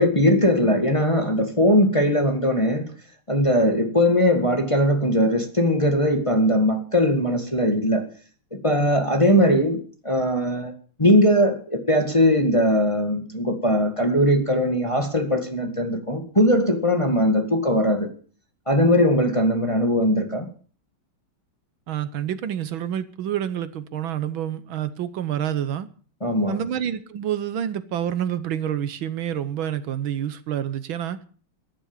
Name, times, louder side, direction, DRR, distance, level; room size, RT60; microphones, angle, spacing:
voice 1, 0.0-2.9 3.3-8.1 8.5-10.7 11.0-18.1 18.7-20.5 26.2-26.6, equal, 15° left, 4 dB, 1.8 m, -20 dB
voice 2, 21.9-25.9 26.5-31.2, right 10 dB, 75° right, 13 dB, 1.7 m, -28 dB
14.0 x 11.0 x 7.3 m, 0.44 s
omnidirectional pair, 2.3 m